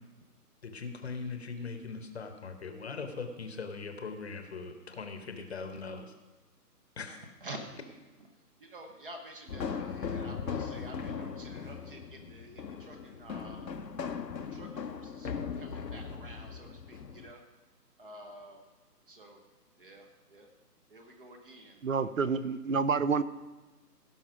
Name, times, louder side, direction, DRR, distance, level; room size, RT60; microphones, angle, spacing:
voice 1, 0.6-6.1 7.0-7.3, left 4 dB, 40° left, 7 dB, 1.0 m, -40 dB
voice 2, 8.6-13.9 14.3-17.4 18.0-18.7 19.1-19.4 19.8-20.5 20.9-21.9, right 1 dB, 35° right, 4 dB, 1.0 m, -49 dB
sound 1, 9.5-17.3, left 6 dB, 80° left, 0.9 m, -39 dB
voice 3, 21.8-23.2, right 5 dB, 55° right, 15 dB, 0.6 m, -28 dB
17.0 x 5.8 x 5.1 m, 1.2 s
figure-of-eight pair, 150°, 49 cm